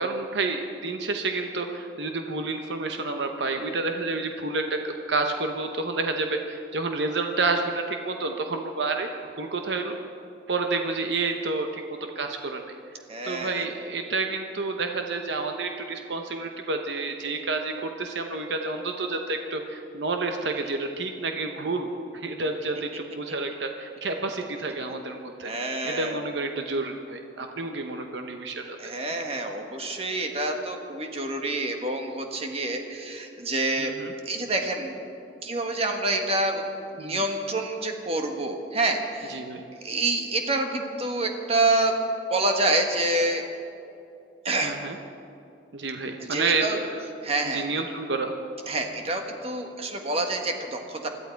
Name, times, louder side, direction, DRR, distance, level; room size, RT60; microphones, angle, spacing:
voice 1, 0.0-9.1 9.4-10.0 10.5-12.6 13.2-21.9 22.1-25.5 25.8-28.9 33.8-34.1 37.0-37.2 39.3-39.7 44.6-45.0 45.7-46.8 47.5-48.3, right 3 dB, 75° right, 4 dB, 1.0 m, -29 dB
voice 2, 13.1-13.6 25.4-26.2 28.8-33.9 34.2-34.9 35.4-36.7 37.0-39.4 39.8-42.0 42.3-43.4 44.4-44.7 46.2-46.8 47.2-47.6 48.7-51.1, right 2 dB, 35° right, 3 dB, 1.6 m, -27 dB
21.5 x 14.0 x 4.6 m, 2.6 s
head